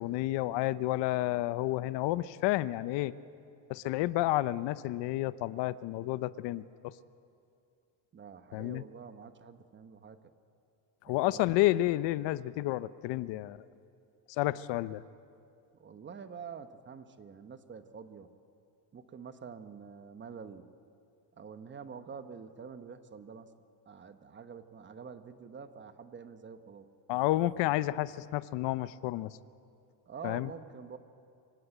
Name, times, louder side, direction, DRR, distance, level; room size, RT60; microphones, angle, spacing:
voice 1, 0.0-3.1 3.7-6.9 8.5-8.8 11.1-13.6 14.4-15.0 27.1-29.3 30.2-30.5, left 16 dB, 75° left, 16 dB, 0.7 m, -30 dB
voice 2, 8.1-10.2 11.0-11.6 15.8-18.3 18.9-20.7 21.4-23.5 23.9-26.9 30.1-31.0, right 6 dB, 25° right, 10 dB, 1.0 m, -47 dB
25.5 x 16.5 x 8.9 m, 2.5 s
cardioid pair, 150°, 44 cm